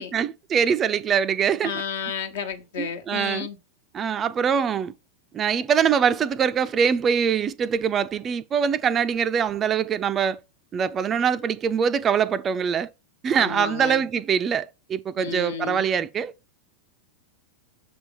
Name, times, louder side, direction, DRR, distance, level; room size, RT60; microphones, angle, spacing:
voice 1, 0.0-1.7 2.8-3.5 3.9-4.9 5.3-10.4 10.7-12.9 13.2-16.3, right 7 dB, 25° right, 0.4 m, -23 dB
voice 2, 1.6-3.6 13.3-14.0 15.2-15.9, left 7 dB, 60° left, 1.1 m, -32 dB
7.1 x 3.4 x 5.3 m
figure-of-eight pair, 90°, 0 cm